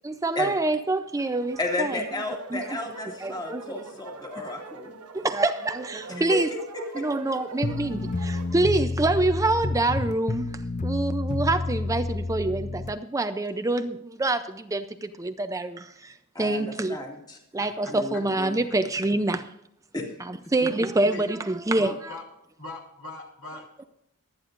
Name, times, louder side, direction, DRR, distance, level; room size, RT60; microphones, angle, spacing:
voice 1, 0.0-2.0 2.5-2.6 3.2-3.6 5.1-6.5 6.9-10.5 10.8-17.0 17.5-19.5 20.2-21.9, right 2 dB, 15° right, 0.5 m, -26 dB
sound 1, 1.1-8.6, right 5 dB, 90° right, 1.1 m, -44 dB
voice 2, 1.6-5.0 6.1-7.0 16.3-17.4 17.9-18.3 19.9-20.1, left 2 dB, 20° left, 2.2 m, -33 dB
sound 2, 7.6-12.9, left 3 dB, 35° left, 0.6 m, -29 dB
voice 3, 21.7-22.2 22.6-23.9, left 2 dB, 70° left, 3.8 m, -40 dB
23.5 x 9.6 x 2.5 m
head